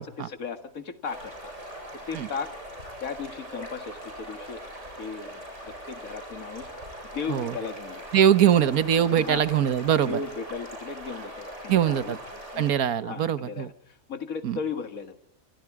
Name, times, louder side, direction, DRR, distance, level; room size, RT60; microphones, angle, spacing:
voice 1, 0.0-1.3 1.9-2.5 3.0-4.6 5.0-6.7 7.1-8.0 9.2-9.5 10.1-12.2 12.5-12.7 13.0-15.1, left 5 dB, 70° left, 8 dB, 2.2 m, -36 dB
sound 1, 1.0-12.7, right 1 dB, 55° right, 8.3 m, -41 dB
voice 2, 8.1-10.2 11.7-12.2 12.6-13.7 14.4-14.6, right 9 dB, 90° right, 13 dB, 1.5 m, -22 dB
27.0 x 26.5 x 4.8 m, 0.80 s
omnidirectional pair, 1.5 m